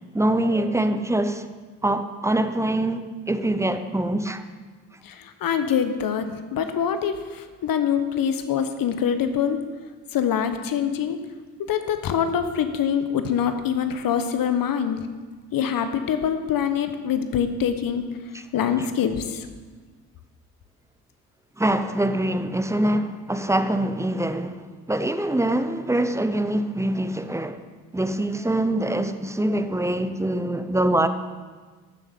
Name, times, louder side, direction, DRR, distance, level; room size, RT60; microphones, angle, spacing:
voice 1, 0.1-1.5 1.8-4.4 18.8-18.9 21.6-27.6 27.9-31.1, right 1 dB, 5° right, 0.8 m, -24 dB
voice 2, 5.0-9.6 10.1-11.2 11.6-15.0 15.5-18.0 18.5-19.5, left 8 dB, 55° left, 1.2 m, -24 dB
13.0 x 7.3 x 5.3 m
hypercardioid pair, 60°, 41 cm